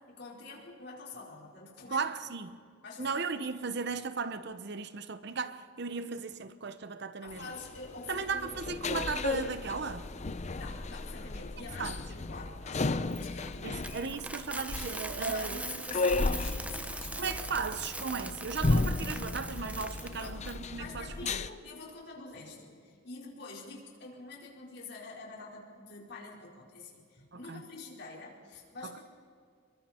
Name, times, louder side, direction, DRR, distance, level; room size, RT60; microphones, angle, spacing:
voice 1, 0.1-2.1 2.8-3.5 7.2-8.6 10.6-13.8 15.2-17.3 20.2-20.4 20.7-29.0, left 3 dB, 55° left, 4.8 m, -46 dB
voice 2, 1.9-2.6 3.0-7.5 8.1-10.1 11.8-12.0 13.6-15.6 17.2-21.4 27.3-27.6 28.8-29.0, right 5 dB, 55° right, 0.9 m, -36 dB
sound 1, 7.3-21.5, left 3 dB, 35° left, 0.6 m, -34 dB
Coin (dropping), 13.1-20.5, right 2 dB, 5° right, 0.7 m, -41 dB
28.5 x 23.0 x 4.5 m
head